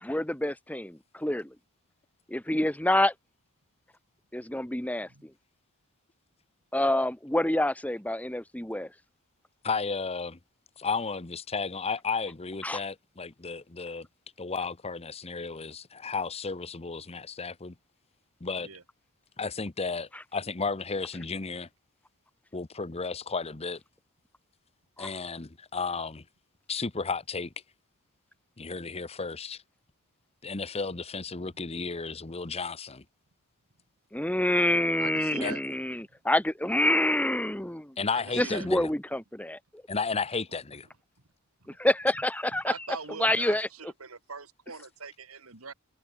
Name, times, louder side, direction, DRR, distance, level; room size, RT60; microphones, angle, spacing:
voice 1, 0.0-1.5 2.3-3.1 4.3-5.1 6.7-8.9 12.6-12.8 25.0-25.1 34.1-37.9 38.4-39.6 41.8-42.7 43.2-43.7, left 1 dB, 5° left, 1.4 m, -27 dB
voice 2, 9.6-10.4 10.8-14.1 14.4-17.7 18.4-18.7 19.4-21.7 22.5-23.8 25.0-26.2 26.7-27.5 28.6-29.6 30.4-33.0 35.4-35.5 38.0-38.9 39.9-40.9, left 4 dB, 25° left, 0.9 m, -33 dB
voice 3, 35.0-35.6 38.1-38.7 41.6-41.8 42.5-45.7, right 5 dB, 70° right, 2.5 m, -42 dB
head